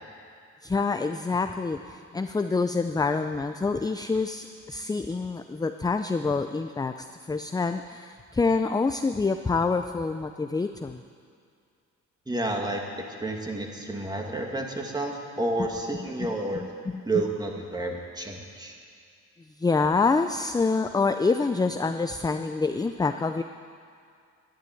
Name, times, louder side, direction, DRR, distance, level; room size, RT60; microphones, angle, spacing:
voice 1, 0.6-11.0 16.9-17.1 19.6-23.4, left 4 dB, 15° left, 8 dB, 0.5 m, -26 dB
voice 2, 12.3-12.8 13.2-16.6 17.1-18.7, right 2 dB, 15° right, 1 dB, 2.3 m, -30 dB
11.5 x 11.0 x 9.3 m, 2.3 s
cardioid pair, 90°, 30 cm